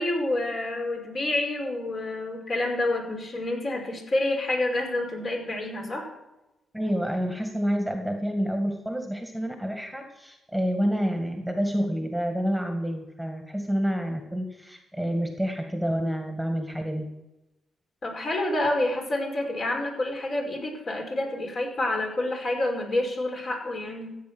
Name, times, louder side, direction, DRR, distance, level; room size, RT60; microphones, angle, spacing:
voice 1, 0.0-6.1 18.0-24.1, left 1 dB, 50° left, 1 dB, 5.0 m, -28 dB
voice 2, 6.7-17.1, equal, ahead, 4 dB, 1.9 m, -28 dB
15.0 x 8.9 x 6.1 m, 0.98 s
cardioid pair, 80°, 0 cm